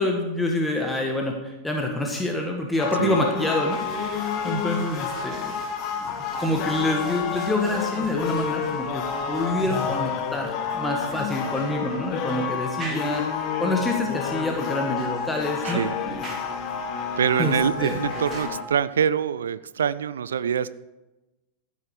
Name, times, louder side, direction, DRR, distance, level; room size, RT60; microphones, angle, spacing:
voice 1, 0.0-5.5 6.4-15.8 17.4-18.0, left 1 dB, 5° left, 1 dB, 1.5 m, -27 dB
sound 1, 2.8-18.6, left 6 dB, 40° left, 1.5 m, -30 dB
sound 2, 3.7-18.4, equal, 25° right, 3.8 m, -42 dB
voice 2, 15.6-16.0 17.2-20.7, right 8 dB, 65° right, 17 dB, 0.3 m, -25 dB
14.0 x 8.4 x 4.9 m, 1.0 s
figure-of-eight pair, 90°, 0 cm